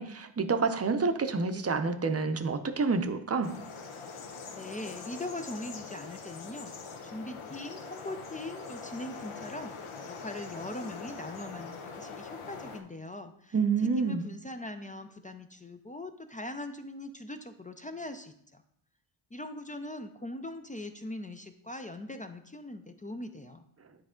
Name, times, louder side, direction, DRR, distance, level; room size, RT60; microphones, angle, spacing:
voice 1, 0.0-3.5 13.5-14.2, right 4 dB, 30° right, 8 dB, 0.6 m, -28 dB
sound 1, 3.4-12.8, left 4 dB, 75° left, 0.9 m, -43 dB
voice 2, 4.1-6.7 7.0-13.6 13.8-18.6 19.3-23.6, left 1 dB, 20° left, 7 dB, 0.3 m, -41 dB
9.6 x 3.3 x 3.7 m, 0.69 s
cardioid pair, 80°, 50 cm